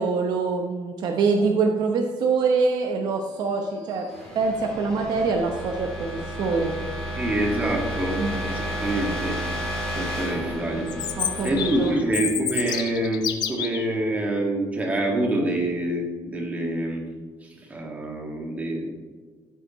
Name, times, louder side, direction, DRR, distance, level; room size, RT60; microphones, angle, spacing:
voice 1, 0.0-4.1 4.3-6.7 8.2-8.4 11.2-11.9, right 4 dB, 55° right, 3 dB, 0.9 m, -24 dB
sound 1, 3.4-13.2, equal, 5° left, 2.9 m, -33 dB
voice 2, 7.2-9.4 9.9-10.9 11.4-17.0 17.7-18.9, right 1 dB, 15° right, 0 dB, 1.8 m, -26 dB
Chirp tweet, 10.9-13.9, left 10 dB, 55° left, 0.8 m, -29 dB
14.5 x 8.2 x 3.1 m, 1.5 s
cardioid pair, 170°, 9 cm